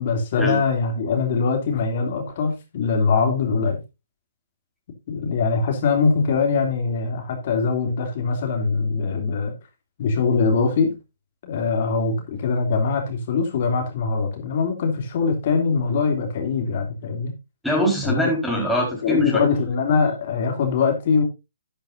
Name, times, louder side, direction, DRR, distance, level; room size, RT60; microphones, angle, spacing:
voice 1, 0.0-3.8 5.1-9.5 10.0-10.9 11.4-17.3 18.0-18.3 19.0-21.2, left 4 dB, 50° left, 3 dB, 2.9 m, -22 dB
voice 2, 17.6-19.4, equal, ahead, -3 dB, 4.5 m, -22 dB
11.5 x 10.5 x 2.7 m, 0.24 s
figure-of-eight pair, 130°, 0 cm